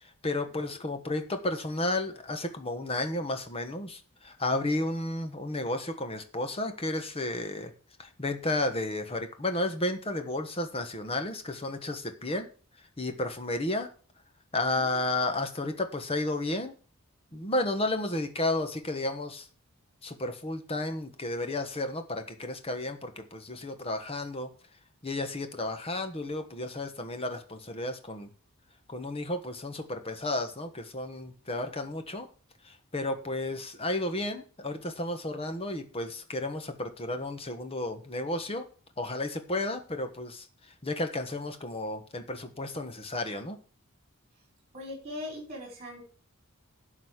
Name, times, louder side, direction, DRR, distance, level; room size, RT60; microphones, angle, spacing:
voice 1, 0.2-7.7 8.0-12.5 13.0-13.9 14.5-16.7 17.3-19.5 20.0-24.5 25.0-28.3 28.9-32.3 32.6-38.7 39.0-40.5 40.8-43.6, left 2 dB, 25° left, 7 dB, 1.2 m, -32 dB
voice 2, 44.7-46.1, left 1 dB, 30° right, 1 dB, 4.4 m, -41 dB
12.0 x 4.1 x 8.0 m, 0.39 s
head